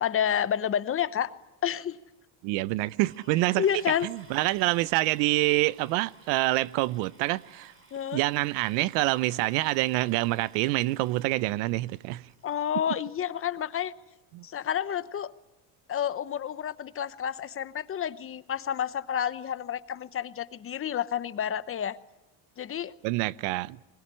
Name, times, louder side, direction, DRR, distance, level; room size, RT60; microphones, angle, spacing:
voice 1, 0.0-1.3 1.6-2.0 3.6-4.1 7.9-8.2 12.4-13.9 14.4-15.3 15.9-22.0 22.6-22.9, left 9 dB, 30° left, 0.9 m, -29 dB
voice 2, 2.4-3.6 4.0-7.7 8.1-12.3 14.3-14.4 23.0-23.8, right 19 dB, 85° right, 0.8 m, -26 dB
sound 1, 2.8-12.7 13.5-13.6 14.1-14.2 14.4-14.7, right 2 dB, 30° right, 4.6 m, -58 dB
21.0 x 20.5 x 9.9 m
cardioid pair, 130°, 44 cm